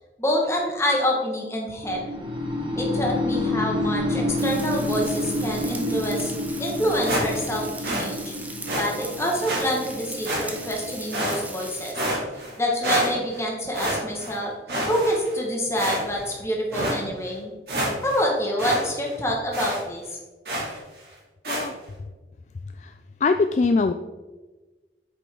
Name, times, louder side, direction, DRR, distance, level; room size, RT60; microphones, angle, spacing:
voice 1, 0.2-2.2 2.8-6.3 6.6-8.3 8.8-11.9 12.6-14.5 14.9-17.5 18.0-20.2, equal, 15° left, -1 dB, 1.7 m, -26 dB
sound 1, 1.8-11.8, left 1 dB, 25° right, 1.3 m, -29 dB
Frying (food), 4.4-11.9, right 2 dB, 10° right, 0.8 m, -39 dB
sound 2, 7.1-7.6 7.8-8.1 8.7-8.8 9.4-9.6 10.2-10.7 11.1-11.6 11.9-12.5 12.8-13.4 13.7-14.3 14.7-15.4 15.7-16.3 16.7-17.0 17.4-17.5 17.7-18.2 18.6-18.8 19.1-19.2 19.5-19.8 20.4-20.8 21.4-21.7, equal, 60° right, 3.0 m, -27 dB
voice 2, 23.2-23.9, left 4 dB, 40° left, 8 dB, 0.3 m, -22 dB
8.5 x 6.6 x 3.9 m, 1.2 s
head